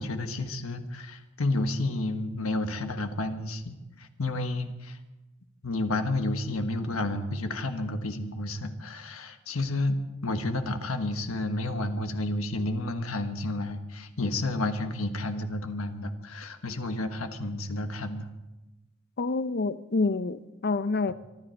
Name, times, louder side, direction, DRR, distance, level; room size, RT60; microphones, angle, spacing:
voice 1, 0.0-5.0 5.6-18.3, left 2 dB, 85° left, 1.4 m, -31 dB
voice 2, 19.2-21.1, left 3 dB, 50° left, 0.6 m, -27 dB
24.5 x 12.0 x 4.6 m
head